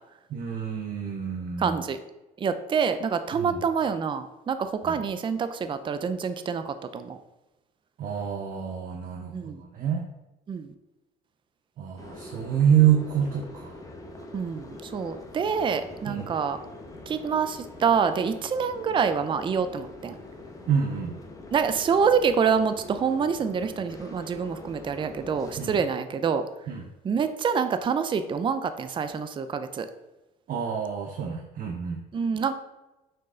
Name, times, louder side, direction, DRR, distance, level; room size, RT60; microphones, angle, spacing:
voice 1, 0.3-1.8 3.4-3.6 4.8-4.9 8.0-10.0 11.8-13.8 16.1-16.3 20.7-21.1 25.6-25.8 26.7-26.8 30.5-32.0, right 8 dB, 55° right, 1 dB, 0.8 m, -27 dB
voice 2, 1.6-2.0 2.4-7.2 9.3-9.6 10.5-10.7 14.3-16.6 17.1-20.2 21.5-26.5 27.0-29.9 32.1-32.6, right 6 dB, 30° right, 10 dB, 0.5 m, -26 dB
sound 1, 12.0-25.8, left 2 dB, 20° left, 1.0 m, -44 dB
6.3 x 4.6 x 3.8 m, 1.0 s
cardioid pair, 110°, 17 cm